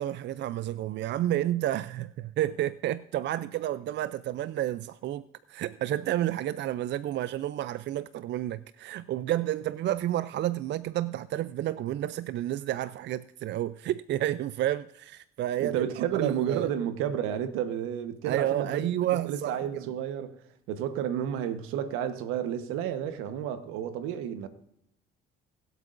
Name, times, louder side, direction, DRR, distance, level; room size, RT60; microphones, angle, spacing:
voice 1, 0.0-5.2 5.5-15.9 16.1-16.7 18.2-19.9, right 13 dB, 60° right, 0.4 m, -30 dB
voice 2, 15.6-18.8 19.2-20.3 20.7-24.5, right 9 dB, 85° right, 1.1 m, -31 dB
21.5 x 8.1 x 2.6 m
supercardioid pair, 65°, 21 cm